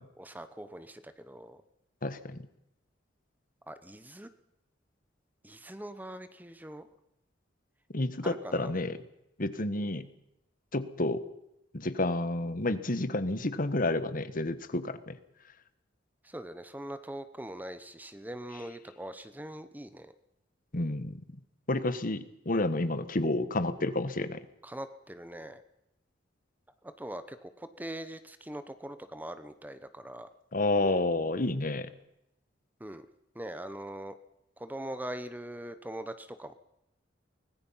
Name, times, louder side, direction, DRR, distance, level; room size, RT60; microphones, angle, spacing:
voice 1, 0.2-1.6 3.7-4.3 5.4-6.9 8.2-8.7 16.2-20.1 24.6-25.6 26.8-30.3 32.8-33.1 33.3-34.2 34.6-36.5, right 1 dB, 10° right, 11 dB, 1.0 m, -42 dB
voice 2, 2.0-2.4 7.9-9.0 9.4-10.1 10.7-11.2 11.7-15.2 20.7-21.2 21.7-24.4 30.5-31.9, left 2 dB, 45° left, 12 dB, 1.4 m, -30 dB
24.5 x 19.0 x 5.7 m, 0.83 s
head